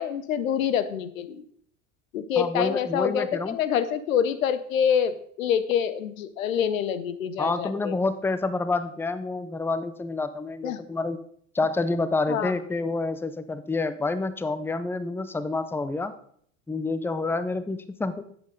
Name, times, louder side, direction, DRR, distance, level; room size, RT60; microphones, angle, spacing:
voice 1, 0.0-1.4 2.1-8.0 10.6-10.8 12.3-12.5, left 8 dB, 85° left, 14 dB, 0.8 m, -26 dB
voice 2, 2.4-3.6 7.4-11.2 11.5-16.1 16.7-18.3, left 3 dB, 5° left, 13 dB, 0.6 m, -28 dB
11.0 x 8.1 x 3.9 m, 0.64 s
hypercardioid pair, 80°, 39 cm